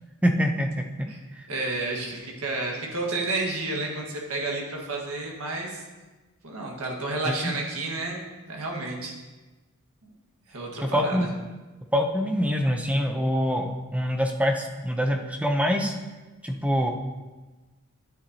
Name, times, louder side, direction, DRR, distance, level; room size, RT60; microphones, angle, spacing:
voice 1, 0.2-0.8 1.4-1.5 7.3-7.4 10.8-11.3 11.9-15.9 16.4-16.9, equal, 5° right, 3 dB, 0.7 m, -25 dB
voice 2, 1.5-5.8 6.4-9.1 10.5-11.3, right 2 dB, 85° right, -1 dB, 1.6 m, -31 dB
9.8 x 8.9 x 2.8 m, 1.2 s
head